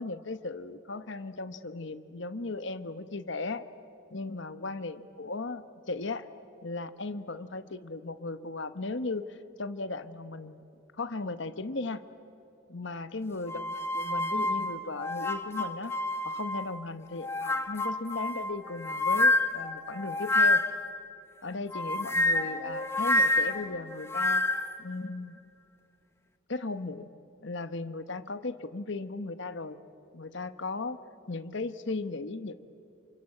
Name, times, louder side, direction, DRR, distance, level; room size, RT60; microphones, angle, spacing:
voice 1, 0.0-3.7 4.1-6.3 6.6-10.6 11.0-12.0 12.7-15.9 16.2-20.7 21.4-24.5 24.8-25.4 26.5-27.1 27.4-29.8 30.1-31.0 31.3-32.5, left 3 dB, 60° left, 11 dB, 1.0 m, -36 dB
sound 1, 13.5-16.7 17.2-20.9 21.7-24.8, left 2 dB, 10° left, 0.9 m, -28 dB
28.5 x 26.0 x 7.8 m, 2.7 s
head